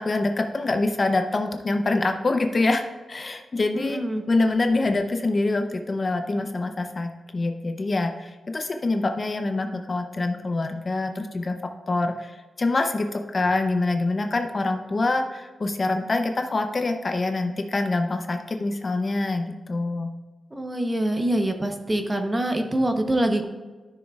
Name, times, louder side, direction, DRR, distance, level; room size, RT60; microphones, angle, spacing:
voice 1, 0.0-2.8 3.1-4.0 4.3-11.6 11.9-12.3 12.6-20.1, left 2 dB, 35° left, 6 dB, 0.6 m, -25 dB
voice 2, 3.7-4.2 20.5-23.5, right 1 dB, 15° right, 5 dB, 0.9 m, -25 dB
12.5 x 6.3 x 2.4 m, 1.3 s
wide cardioid pair, 115°, 0 cm